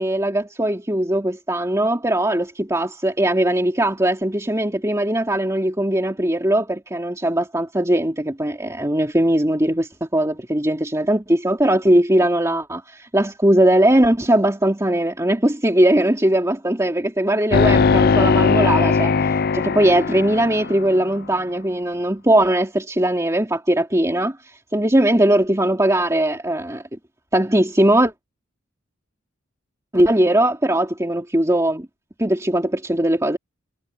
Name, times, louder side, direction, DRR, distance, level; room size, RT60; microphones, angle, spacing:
voice 1, 0.0-26.8 27.3-28.1 29.9-31.9 32.2-33.4, right 1 dB, 15° right, 2.7 m, -19 dB
sound 1, 17.5-21.0, left 4 dB, 50° left, 0.6 m, -18 dB
head